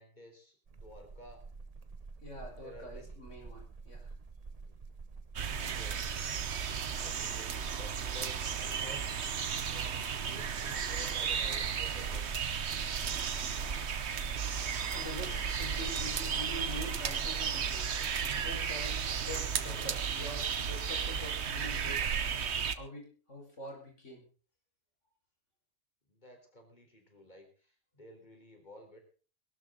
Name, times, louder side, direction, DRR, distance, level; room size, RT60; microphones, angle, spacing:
voice 1, 0.0-1.4 2.6-3.2 4.6-4.8 5.6-6.2 7.0-9.2 9.6-12.4 26.1-29.0, left 1 dB, 40° left, 4 dB, 4.1 m, -53 dB
sound 1, 0.7-18.9, right 4 dB, 35° right, 0.9 m, -48 dB
voice 2, 2.2-4.1 14.8-17.9 18.4-22.1 22.7-24.2, left 1 dB, 90° left, 1 dB, 5.5 m, -45 dB
sound 2, 5.4-22.8, right 7 dB, 70° right, 1.3 m, -34 dB
22.0 x 12.5 x 3.9 m, 0.37 s
omnidirectional pair, 1.2 m